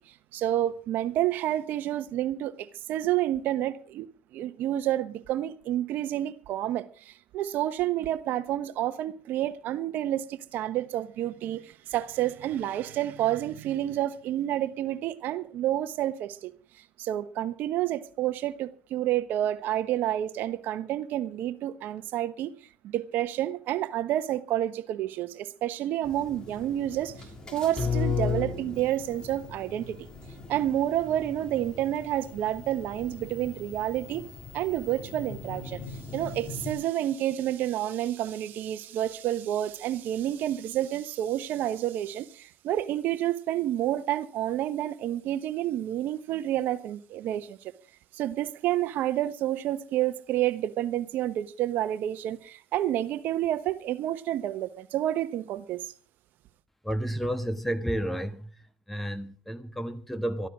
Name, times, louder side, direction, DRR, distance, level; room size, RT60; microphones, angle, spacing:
voice 1, 0.3-22.5 22.8-27.3 27.5-30.1 30.5-34.2 34.5-47.7 48.1-55.8, right 12 dB, 60° right, 1.1 m, -29 dB
sound 1, 26.0-36.7, left 5 dB, 25° left, 3.5 m, -36 dB
voice 2, 56.8-58.5 58.9-60.5, equal, 5° left, 1.4 m, -31 dB
13.5 x 12.5 x 6.2 m
supercardioid pair, 105°, 4 cm